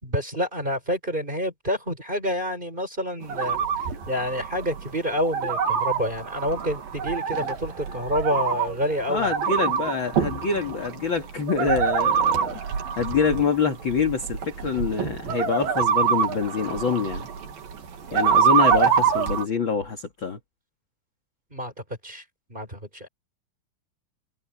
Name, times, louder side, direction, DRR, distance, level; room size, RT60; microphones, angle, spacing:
voice 1, 0.0-3.6 4.1-9.3 21.5-21.7 22.0-22.2 22.5-23.1, equal, 10° right, 5.5 m, -28 dB
sound 1, 3.2-19.4, right 7 dB, 75° right, 4.4 m, -25 dB
voice 2, 9.1-12.6 13.0-17.3 18.1-20.4, left 6 dB, 40° left, 2.2 m, -26 dB
omnidirectional pair, 4.2 m